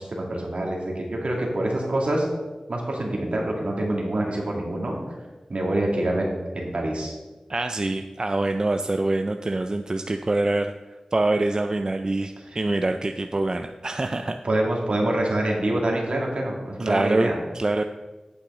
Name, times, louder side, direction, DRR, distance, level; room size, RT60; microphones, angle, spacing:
voice 1, 0.0-2.3 2.7-5.0 5.5-6.3 6.5-7.1 12.5-12.6 14.4-17.4, right 1 dB, 65° right, -1 dB, 2.1 m, -26 dB
voice 2, 7.5-10.7 11.1-14.3 16.8-17.8, right 2 dB, 35° right, 6 dB, 0.3 m, -25 dB
8.7 x 8.0 x 3.7 m, 1.2 s
wide cardioid pair, 80°, 2 cm